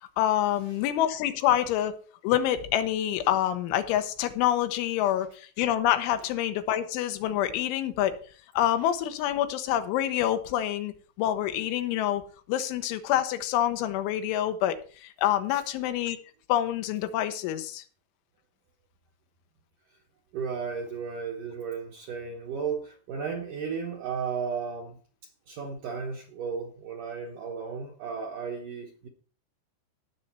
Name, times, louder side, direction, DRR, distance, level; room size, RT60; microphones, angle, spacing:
voice 1, 0.2-2.0 2.2-8.1 8.5-10.9 11.2-12.2 12.5-16.2 16.5-17.8, left 12 dB, 90° left, 3.4 m, -27 dB
voice 2, 20.3-25.0 25.5-29.1, right 6 dB, 70° right, 2.0 m, -34 dB
17.0 x 6.6 x 4.5 m
omnidirectional pair, 5.4 m